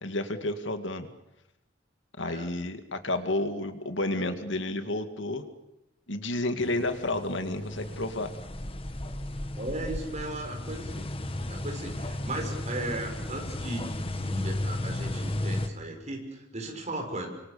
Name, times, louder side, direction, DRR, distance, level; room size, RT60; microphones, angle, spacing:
voice 1, 0.0-1.1 2.2-5.4 6.1-8.3, left 2 dB, 75° left, 8 dB, 2.2 m, -31 dB
sound 1, 6.6-15.7, left 1 dB, 30° left, 1.6 m, -34 dB
voice 2, 9.5-11.1 11.5-17.3, right 1 dB, 35° right, 3 dB, 6.4 m, -36 dB
29.5 x 25.5 x 7.0 m, 0.88 s
head